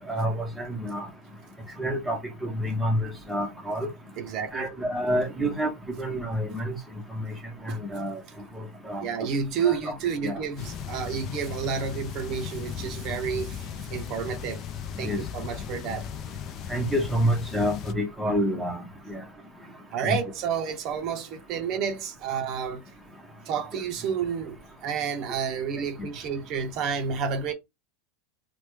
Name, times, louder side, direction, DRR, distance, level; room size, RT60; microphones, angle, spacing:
voice 1, 0.1-1.1 1.8-3.9 4.5-5.7 6.0-6.8 7.6-8.2 8.9-9.0 9.6-9.9 10.2-10.4 15.0-15.2 16.7-18.8 19.1-19.2 20.0-20.2, equal, 5° right, 0.8 m, -28 dB
voice 2, 4.2-4.7 7.7-7.8 9.0-14.6 15.0-16.1 19.9-22.8 23.5-27.5, right 7 dB, 45° right, 0.6 m, -30 dB
sound 1, 10.6-17.9, left 8 dB, 40° left, 0.4 m, -37 dB
3.2 x 2.1 x 3.1 m
supercardioid pair, 130°, 0 cm